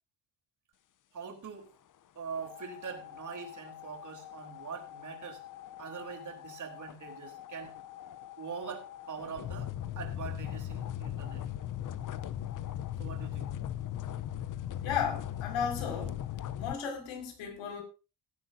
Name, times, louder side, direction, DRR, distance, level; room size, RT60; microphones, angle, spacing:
voice 1, 1.1-1.7 2.2-5.4 5.8-7.7 8.4-11.4 13.0-13.5, right 6 dB, 40° right, 4.0 m, -43 dB
sound 1, 2.3-16.7, left 11 dB, 45° left, 0.8 m, -40 dB
voice 2, 14.8-16.2 16.6-17.8, left 7 dB, 85° left, 5.8 m, -34 dB
17.5 x 11.5 x 2.7 m
cardioid pair, 130°, 45 cm